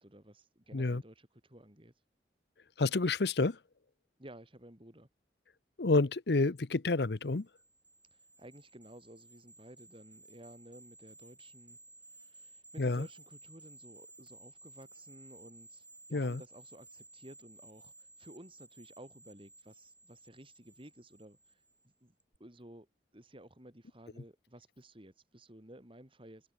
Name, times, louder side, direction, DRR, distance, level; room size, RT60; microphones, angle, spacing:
voice 1, 0.0-1.9 4.2-5.1 8.1-11.8 12.1-21.6 22.0-22.1 22.4-22.9 23.1-26.5, right 1 dB, 30° right, 3.9 m, -54 dB
voice 2, 2.8-3.6 5.8-7.5 12.8-13.1 16.1-16.4, left 3 dB, 65° left, 0.8 m, -29 dB
sound 1, 7.2-21.9 22.2-22.4, right 2 dB, 10° right, 4.2 m, -57 dB
head